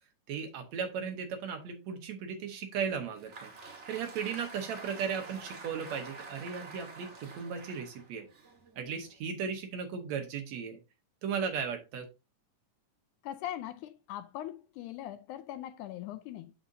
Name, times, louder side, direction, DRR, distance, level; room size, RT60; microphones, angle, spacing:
voice 1, 0.3-3.5 3.9-8.3 8.8-10.8 11.2-12.1, right 6 dB, 70° right, 2.0 m, -36 dB
Applause, 2.9-9.2, right 3 dB, 40° right, 0.9 m, -48 dB
voice 2, 13.2-16.5, left 12 dB, 80° left, 1.9 m, -41 dB
11.0 x 4.3 x 2.7 m
omnidirectional pair, 3.7 m